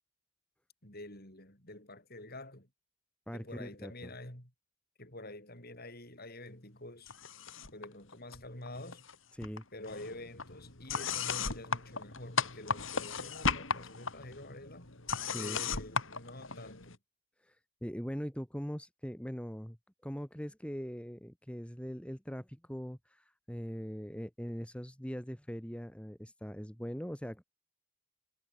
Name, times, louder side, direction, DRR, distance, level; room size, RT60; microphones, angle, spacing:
voice 1, 0.8-2.7 3.3-4.5 5.0-7.1 7.7-9.0 9.7-14.9 15.3-17.0, left 1 dB, 45° left, 7.1 m, -48 dB
voice 2, 3.3-4.1 9.3-9.6 15.3-15.6 17.4-17.6 17.8-19.8 20.0-27.5, equal, 5° left, 2.4 m, -41 dB
sound 1, 7.1-7.9 8.1-9.1 9.4-17.0, left 5 dB, 60° left, 3.2 m, -36 dB
head